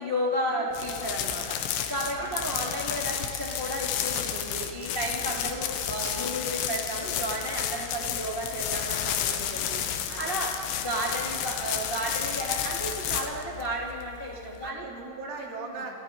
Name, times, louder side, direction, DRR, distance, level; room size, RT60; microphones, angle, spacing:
voice 1, 0.0-10.5 10.8-14.8 15.6-15.8, equal, 25° left, -2 dB, 1.2 m, -33 dB
sound 1, 0.7-14.7, left 9 dB, 70° left, 3.4 m, -32 dB
Domestic sounds home sounds, 3.0-9.3 9.6-10.0 10.3-10.4, equal, 5° left, 7.1 m, -43 dB
voice 2, 14.6-16.0, right 3 dB, 70° right, 0 dB, 5.3 m, -40 dB
28.0 x 28.0 x 5.3 m, 2.5 s
omnidirectional pair, 5.9 m